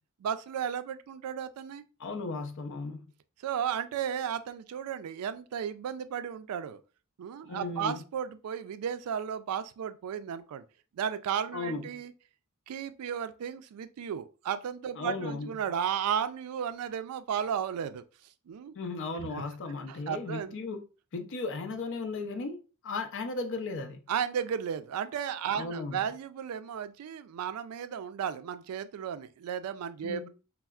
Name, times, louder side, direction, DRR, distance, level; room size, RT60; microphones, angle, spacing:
voice 1, 0.2-1.8 3.4-6.8 7.2-10.6 11.0-12.1 12.7-18.0 18.5-18.7 19.2-19.3 19.9-20.5 24.1-30.3, right 8 dB, 90° right, 0.3 m, -34 dB
voice 2, 2.0-3.1 7.4-8.0 11.5-12.0 15.0-15.6 18.7-20.8 21.1-24.0 25.5-26.0 30.0-30.3, left 3 dB, 60° left, 0.5 m, -36 dB
4.2 x 2.0 x 2.3 m
head